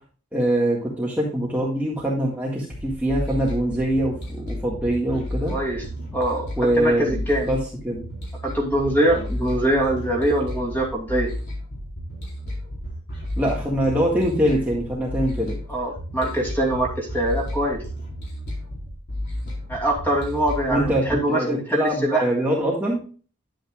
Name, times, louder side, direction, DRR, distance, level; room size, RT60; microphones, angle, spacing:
voice 1, 0.3-5.5 6.6-7.6 7.8-8.0 13.4-15.5 20.7-23.0, right 1 dB, 10° right, -4 dB, 1.7 m, -23 dB
sound 1, 2.7-21.1, left 1 dB, 50° left, 4.2 m, -32 dB
voice 2, 5.5-5.8 6.1-6.5 6.8-7.6 8.4-11.3 15.7-17.8 19.7-22.2, right 1 dB, 10° left, -1 dB, 2.9 m, -23 dB
10.5 x 9.2 x 2.4 m, 0.38 s
head